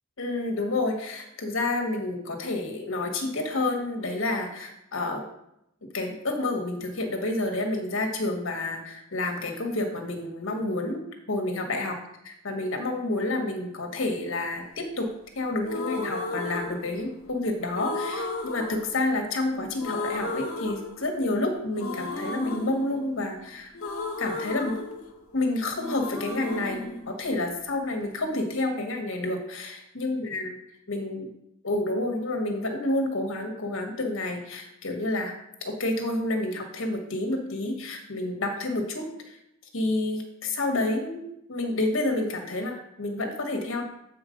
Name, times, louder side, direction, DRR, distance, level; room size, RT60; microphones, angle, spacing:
voice 1, 0.2-5.2 5.9-11.0 11.3-12.0 12.2-15.1 15.3-23.7 24.2-24.7 25.3-30.6 30.9-31.3 31.6-35.3 35.6-39.4 39.7-41.2 41.5-43.8, left 2 dB, 65° left, 3 dB, 1.4 m, -29 dB
sound 1, 15.6-17.3 17.7-19.5 19.8-21.4 21.7-25.5 25.7-27.8, left 2 dB, 90° left, 1.1 m, -34 dB
8.1 x 4.4 x 5.1 m, 0.80 s
head